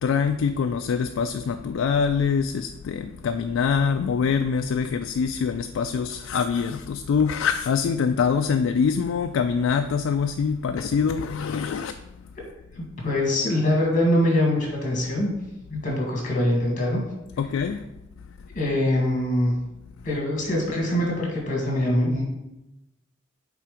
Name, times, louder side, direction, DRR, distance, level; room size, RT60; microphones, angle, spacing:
voice 1, 0.0-11.9 17.4-17.9, left 6 dB, 85° left, 7 dB, 0.3 m, -24 dB
voice 2, 12.8-15.4 15.7-17.0 18.5-19.5 20.0-22.2, left 1 dB, 40° left, -1 dB, 1.7 m, -23 dB
5.8 x 3.7 x 4.9 m, 0.93 s
head